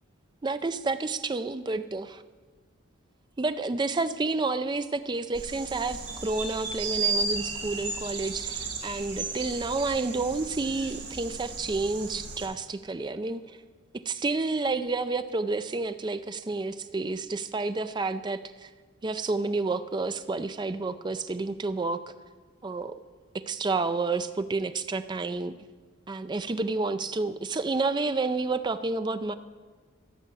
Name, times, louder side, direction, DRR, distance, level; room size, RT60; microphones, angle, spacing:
voice 1, 0.4-2.2 3.4-13.6 14.1-18.7 19.0-22.0 22.6-23.0 23.3-25.5 26.1-29.3, right 3 dB, 20° right, 11 dB, 0.4 m, -30 dB
sound 1, 5.3-12.5, right 4 dB, 60° right, 2.8 m, -34 dB
14.0 x 5.7 x 8.4 m, 1.5 s
head